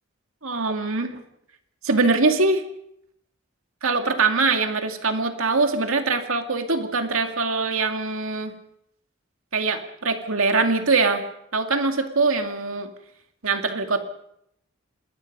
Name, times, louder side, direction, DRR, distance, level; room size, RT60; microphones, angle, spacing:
voice 1, 0.4-1.2 1.8-2.6 3.8-8.5 9.5-11.2 11.5-12.9 13.4-14.0, right 3 dB, 80° right, 5 dB, 2.3 m, -23 dB
27.0 x 20.5 x 5.5 m, 0.76 s
head